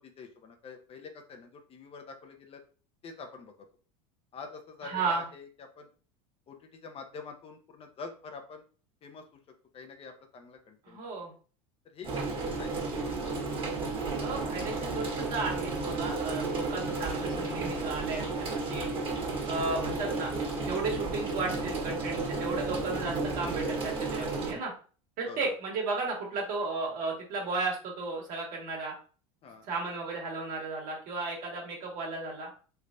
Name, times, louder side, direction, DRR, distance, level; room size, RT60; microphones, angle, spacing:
voice 1, 0.0-2.6 3.0-3.5 4.3-5.5 5.8-5.9 6.5-8.6 9.0-9.2 9.7-11.0 11.9-12.3 12.6-12.7 24.1-24.2 25.3-25.5 29.4-29.7, left 4 dB, 35° left, 5 dB, 0.6 m, -46 dB
voice 2, 4.8-5.2 10.8-11.3 14.2-18.8 19.5-20.3 20.6-24.7 25.2-28.9 29.6-32.5, right 3 dB, 55° right, -1 dB, 1.6 m, -34 dB
sound 1, 12.0-24.5, right 3 dB, 30° right, 1.3 m, -33 dB
3.3 x 3.2 x 2.6 m, 0.39 s
supercardioid pair, 100°, 17 cm